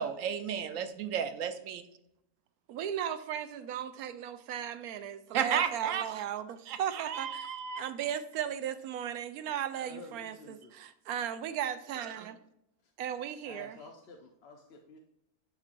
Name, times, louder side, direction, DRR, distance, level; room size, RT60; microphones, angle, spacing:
voice 1, 0.0-1.8 5.3-6.1 6.7-7.8, right 8 dB, 65° right, 9 dB, 1.0 m, -33 dB
voice 2, 2.7-7.5 7.8-12.4 13.0-13.8, right 9 dB, 90° right, 11 dB, 1.1 m, -36 dB
voice 3, 9.7-10.8 12.8-12.9 13.4-15.0, left 3 dB, 55° left, 3 dB, 0.8 m, -51 dB
10.5 x 4.3 x 2.5 m, 0.82 s
omnidirectional pair, 1.5 m